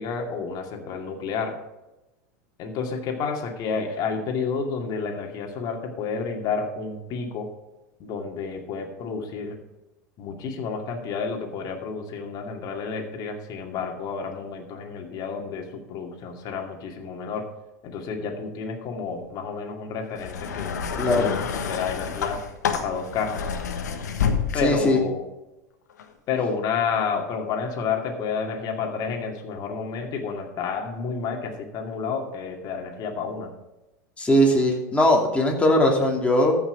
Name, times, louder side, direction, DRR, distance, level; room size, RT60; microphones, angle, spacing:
voice 1, 0.0-1.6 2.6-7.5 8.0-9.6 10.2-17.5 17.8-22.4 22.8-23.5 24.5-25.2 26.3-33.5, left 5 dB, 45° left, 3 dB, 2.4 m, -30 dB
sound 1, 20.1-24.9 25.9-26.0, left 6 dB, 85° left, 1.3 m, -28 dB
voice 2, 21.0-21.3 24.6-25.0 34.2-36.6, left 1 dB, 15° left, 0 dB, 2.8 m, -20 dB
14.0 x 6.1 x 5.0 m, 1.0 s
hypercardioid pair, 95°, 9 cm